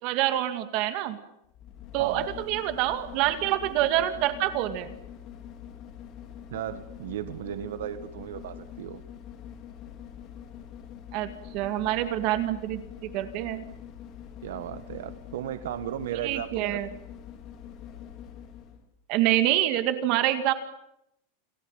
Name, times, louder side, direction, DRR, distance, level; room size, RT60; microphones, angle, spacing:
voice 1, 0.0-1.2 1.9-4.9 11.1-13.6 16.2-16.9 19.1-20.5, right 13 dB, 35° right, 9 dB, 2.1 m, -26 dB
sound 1, 1.4-18.8 19.2-19.3, left 9 dB, 30° left, 2.9 m, -44 dB
voice 2, 6.5-9.0 14.4-16.8, right 11 dB, 75° right, 11 dB, 1.8 m, -35 dB
29.5 x 19.5 x 9.0 m, 0.81 s
supercardioid pair, 175°, 0 cm